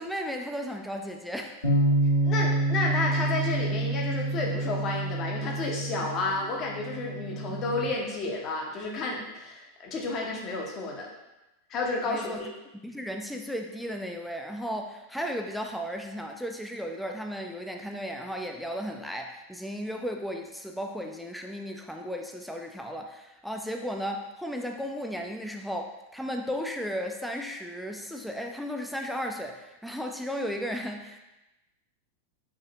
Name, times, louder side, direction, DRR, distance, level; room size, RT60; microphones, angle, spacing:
voice 1, 0.0-1.7 12.1-12.4 12.8-31.2, equal, ahead, 3 dB, 0.3 m, -35 dB
Bass guitar, 1.6-7.9, right 2 dB, 65° left, 1.4 m, -28 dB
voice 2, 2.2-11.1 11.7-12.5, left 3 dB, 35° left, -1 dB, 0.8 m, -31 dB
4.8 x 2.8 x 2.8 m, 0.98 s
figure-of-eight pair, 90°, 0 cm